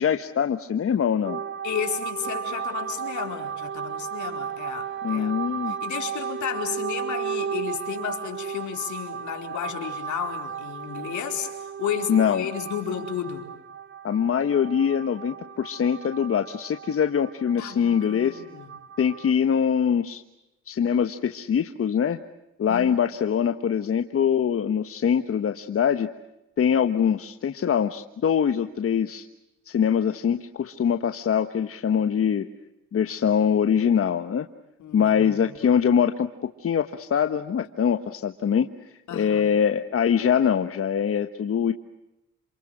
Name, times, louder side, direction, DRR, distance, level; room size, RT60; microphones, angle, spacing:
voice 1, 0.0-1.4 5.0-5.8 12.1-12.5 14.0-18.4 19.0-20.2 20.7-22.2 22.6-26.1 26.6-29.2 29.7-32.4 32.9-34.5 34.9-41.7, left 8 dB, 50° left, 8 dB, 1.3 m, -23 dB
sound 1, 1.2-19.3, right 7 dB, 40° right, 1.1 m, -34 dB
voice 2, 1.6-5.3 5.7-11.5 11.8-13.5 17.6-18.7 22.7-23.0 34.8-35.8 39.1-39.5, left 9 dB, 75° left, 4 dB, 4.6 m, -33 dB
28.0 x 27.0 x 6.5 m, 0.92 s
cardioid pair, 90°, 30 cm